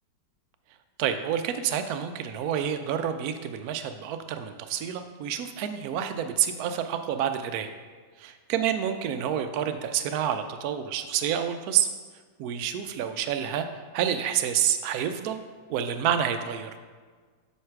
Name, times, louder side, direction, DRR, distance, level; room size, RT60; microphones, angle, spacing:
voice 1, 1.0-7.7 8.5-11.9 12.4-13.7 13.9-15.4 15.7-16.7, right 9 dB, 70° right, 8 dB, 0.9 m, -28 dB
7.7 x 3.2 x 5.8 m, 1.5 s
omnidirectional pair, 1.9 m